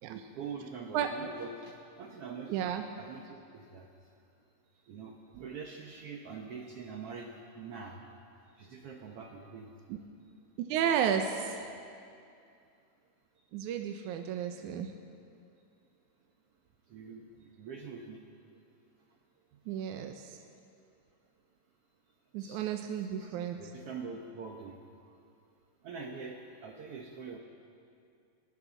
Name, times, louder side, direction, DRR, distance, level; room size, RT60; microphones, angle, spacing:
voice 1, 0.0-2.6 3.0-3.9 4.8-8.0 8.6-9.7 16.9-18.2 22.4-22.7 23.1-24.8 25.8-27.4, right 5 dB, 65° right, 1 dB, 1.6 m, -44 dB
voice 2, 2.5-2.8 10.7-11.7 13.5-14.9 19.7-20.4 22.3-23.6, right 8 dB, 85° right, 5 dB, 2.2 m, -32 dB
27.5 x 13.0 x 4.0 m, 2.5 s
omnidirectional pair, 3.5 m